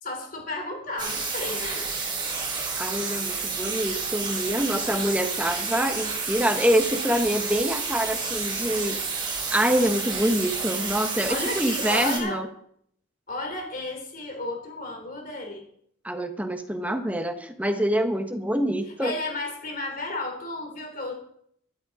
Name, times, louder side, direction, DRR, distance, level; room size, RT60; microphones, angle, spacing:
voice 1, 0.0-1.9 11.3-12.4 13.3-15.7 18.9-21.1, left 2 dB, 45° left, 3 dB, 3.8 m, -33 dB
sound 1, 1.0-12.2, right 4 dB, 25° right, 3.6 m, -30 dB
voice 2, 2.8-9.0 9.5-12.5 16.0-19.1, equal, 10° right, 6 dB, 1.1 m, -25 dB
12.0 x 12.0 x 4.9 m, 0.69 s
head